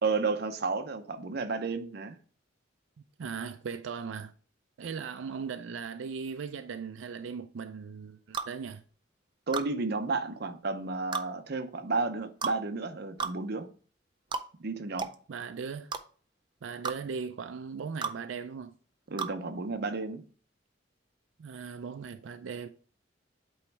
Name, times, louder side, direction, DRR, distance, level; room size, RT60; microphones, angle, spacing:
voice 1, 0.0-2.1 9.5-13.7 14.6-15.1 19.1-20.2, right 3 dB, 55° right, 0.7 m, -32 dB
voice 2, 3.2-4.3 4.8-8.8 15.3-15.9 16.6-18.7 21.4-22.7, right 6 dB, 85° right, 0.4 m, -38 dB
sound 1, 8.3-8.5 9.5-9.7 11.1-11.3 12.4-12.6 13.2-13.4 14.3-14.5 15.0-15.2 15.9-16.0 16.8-17.0 18.0-18.2 19.2-19.3, right 5 dB, 25° right, 0.4 m, -33 dB
8.5 x 3.1 x 4.6 m
head